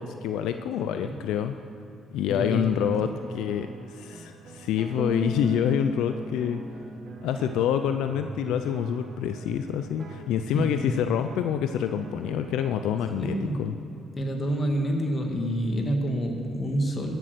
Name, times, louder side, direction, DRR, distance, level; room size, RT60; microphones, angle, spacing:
voice 1, 0.0-1.5 2.1-6.6 7.2-13.8, left 9 dB, 85° left, 8 dB, 0.4 m, -27 dB
voice 2, 2.3-3.1 10.5-11.0 13.2-13.6 14.2-17.1, equal, 35° left, 2 dB, 1.9 m, -28 dB
sound 1, 2.8-13.3, right 4 dB, 65° right, 1.1 m, -45 dB
Bass guitar, 5.0-8.1, equal, 5° right, 0.4 m, -36 dB
13.5 x 7.9 x 6.6 m, 2.7 s
cardioid pair, 90°, 0 cm